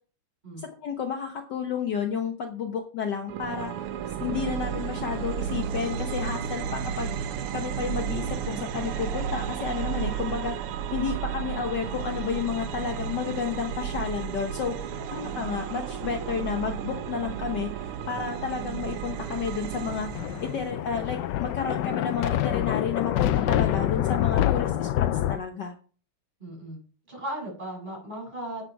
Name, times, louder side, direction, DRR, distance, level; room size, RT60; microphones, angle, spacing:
voice 1, 0.6-3.7 4.2-7.1 7.5-10.5 10.9-14.8 15.1-20.1 20.4-24.9 25.3-25.7, left 6 dB, 60° left, 4 dB, 1.5 m, -31 dB
sound 1, 3.3-20.7, right 8 dB, 85° right, 1.7 m, -33 dB
voice 2, 14.9-15.3 26.4-26.8 27.1-28.6, right 1 dB, 20° right, -3 dB, 7.3 m, -37 dB
Thunder, 19.9-25.4, left 12 dB, 75° left, 1.1 m, -26 dB
10.5 x 8.2 x 4.6 m, 0.41 s
omnidirectional pair, 2.4 m